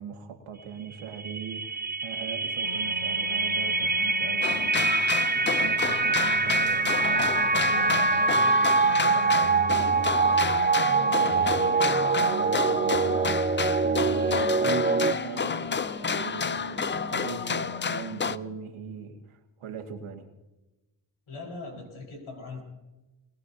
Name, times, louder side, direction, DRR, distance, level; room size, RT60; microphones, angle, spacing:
voice 1, 0.0-20.3, right 7 dB, 90° right, 4 dB, 1.9 m, -40 dB
sound 1, 0.9-15.1, right 4 dB, 20° right, 0.6 m, -25 dB
sound 2, 2.6-18.4, left 2 dB, 50° left, 1.9 m, -41 dB
sound 3, 4.4-18.4, left 5 dB, 25° left, 0.5 m, -30 dB
voice 2, 21.3-22.6, left 3 dB, 75° left, 0 dB, 4.7 m, -40 dB
22.0 x 18.5 x 2.8 m, 1.1 s
supercardioid pair, 50°, 48 cm